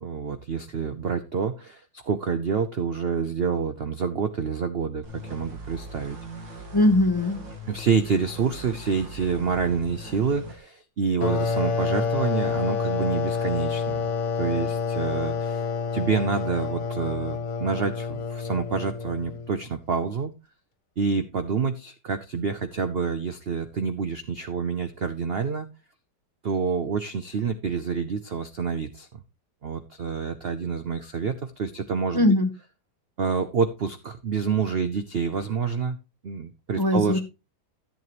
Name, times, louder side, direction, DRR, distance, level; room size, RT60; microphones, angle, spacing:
voice 1, 0.0-6.2 7.7-14.0 14.3-15.6 15.9-20.3 21.0-25.7 26.4-29.1 29.6-32.3 33.2-36.0 36.2-37.2, right 5 dB, 60° right, 10 dB, 0.6 m, -27 dB
sound 1, 5.0-10.6, equal, 90° right, 2.8 m, -40 dB
voice 2, 6.7-7.4 32.1-32.5 36.8-37.2, left 1 dB, 15° left, 8 dB, 0.8 m, -20 dB
sound 2, 11.2-19.6, left 5 dB, 65° left, 1.9 m, -28 dB
14.0 x 7.8 x 3.0 m, 0.27 s
omnidirectional pair, 2.0 m